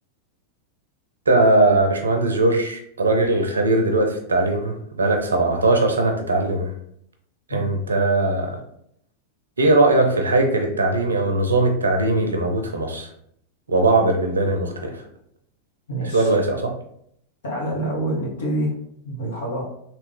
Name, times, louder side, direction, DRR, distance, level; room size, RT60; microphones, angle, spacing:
voice 1, 1.3-6.7 7.5-8.6 9.6-13.1 13.7-15.0 16.1-16.7, right 2 dB, 75° right, 4 dB, 0.6 m, -20 dB
voice 2, 15.9-16.3 17.4-18.7 19.0-19.6, right 1 dB, 60° left, -3 dB, 1.4 m, -26 dB
3.4 x 2.9 x 3.3 m, 0.71 s
figure-of-eight pair, 90°, 0 cm